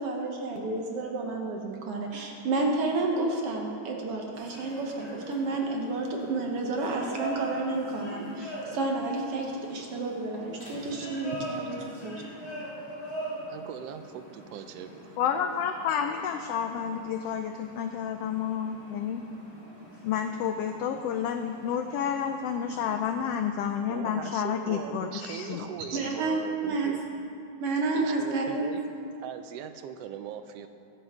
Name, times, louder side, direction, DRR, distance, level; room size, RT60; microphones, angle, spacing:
voice 1, 0.0-11.8 12.0-12.2 25.9-26.9 27.6-28.7, right 3 dB, 60° right, 0 dB, 1.8 m, -30 dB
sound 1, 4.3-23.4, right 1 dB, 15° left, 2.3 m, -43 dB
voice 2, 13.5-15.2 23.9-27.0 27.9-28.8 29.2-30.7, right 8 dB, 75° right, 9 dB, 1.4 m, -40 dB
voice 3, 15.2-19.2 20.0-25.7, left 8 dB, 85° left, 6 dB, 1.3 m, -30 dB
23.0 x 7.9 x 3.6 m, 2.6 s
omnidirectional pair, 3.3 m